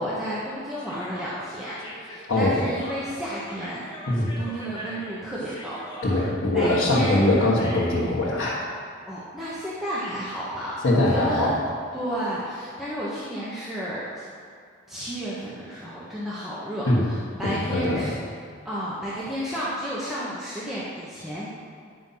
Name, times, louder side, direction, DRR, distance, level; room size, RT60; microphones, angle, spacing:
voice 1, 0.0-3.8 4.4-6.3 6.5-7.2 9.1-11.5 11.9-14.3 14.9-18.2 18.6-21.5, equal, ahead, -9 dB, 1.2 m, -32 dB
Human voice, 0.8-8.1, equal, 20° left, 1.3 m, -40 dB
voice 2, 2.3-2.6 4.1-4.3 6.0-8.6 10.8-11.6 16.9-17.1 17.4-18.1, left 1 dB, 85° left, -7 dB, 1.6 m, -22 dB
10.0 x 5.5 x 5.7 m, 2.3 s
head